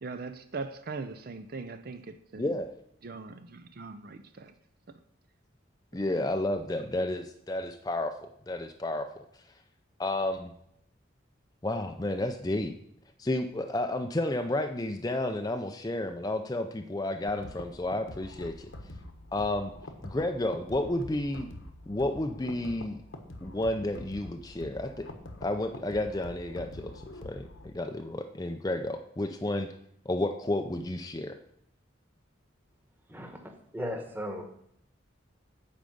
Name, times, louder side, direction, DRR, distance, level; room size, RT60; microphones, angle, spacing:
voice 1, 0.0-2.6 3.0-4.5, right 3 dB, 45° right, 9 dB, 0.5 m, -40 dB
voice 2, 2.4-2.7 5.9-9.2 10.0-10.5 11.6-12.7 13.2-18.7 19.3-19.7 20.0-21.5 21.9-23.0 23.4-25.1 25.4-29.7 30.1-31.4, left 1 dB, 20° left, 6 dB, 0.5 m, -31 dB
sound 1, 17.3-27.7, left 1 dB, 85° left, 1.4 m, -45 dB
voice 3, 33.1-34.4, equal, 10° right, 4 dB, 1.2 m, -37 dB
8.5 x 5.2 x 7.7 m, 0.73 s
head